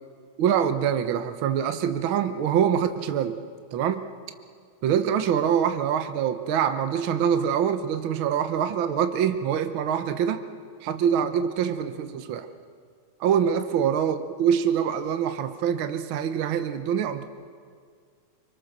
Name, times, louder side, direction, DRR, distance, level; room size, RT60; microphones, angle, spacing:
voice 1, 0.4-3.4 3.7-4.1 4.8-10.4 10.8-12.5 13.2-17.2, right 8 dB, 70° right, 8 dB, 1.2 m, -24 dB
26.0 x 25.0 x 6.6 m, 2.1 s
omnidirectional pair, 3.4 m